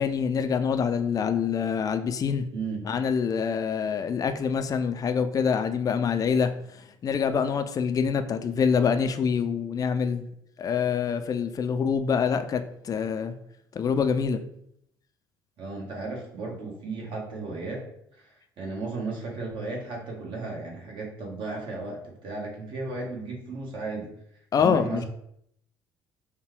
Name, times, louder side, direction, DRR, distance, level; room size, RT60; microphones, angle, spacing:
voice 1, 0.0-2.4 2.8-6.5 7.0-10.3 10.6-13.3 13.8-14.4 24.5-25.0, left 6 dB, 35° left, 8 dB, 0.4 m, -25 dB
voice 2, 15.6-17.9 18.2-18.3 18.6-24.1 24.6-25.0, right 3 dB, 45° right, -2 dB, 1.4 m, -34 dB
5.2 x 2.2 x 3.2 m, 0.72 s
figure-of-eight pair, 55°, 11 cm